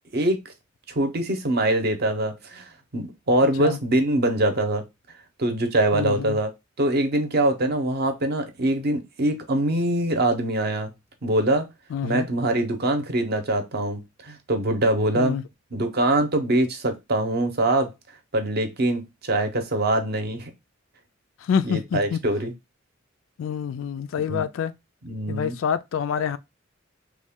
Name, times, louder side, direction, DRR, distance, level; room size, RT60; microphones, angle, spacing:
voice 1, 0.9-2.6 2.9-4.8 5.4-6.5 6.8-10.9 11.2-11.7 12.0-15.4 15.7-17.9 18.3-20.5 21.7-22.5 24.3-24.4 25.0-25.5, right 1 dB, 55° right, 0.7 m, -23 dB
voice 2, 3.4-3.8 5.9-6.4 11.9-12.3 15.1-15.4 21.4-22.2 23.4-24.7 25.3-26.4, left 7 dB, 75° left, 0.3 m, -27 dB
3.1 x 2.2 x 3.5 m
head